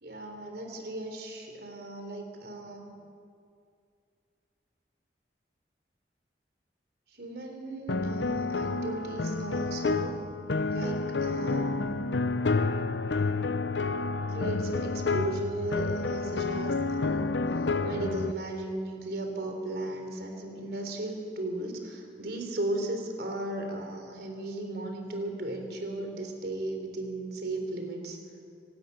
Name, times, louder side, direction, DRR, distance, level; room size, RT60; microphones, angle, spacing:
voice 1, 0.0-3.0 7.1-10.1 10.7-11.8 14.2-28.2, right 1 dB, 60° right, 4 dB, 3.7 m, -36 dB
sound 1, 7.9-18.3, left 3 dB, 80° left, 0.7 m, -29 dB
25.0 x 13.0 x 9.5 m, 2.4 s
head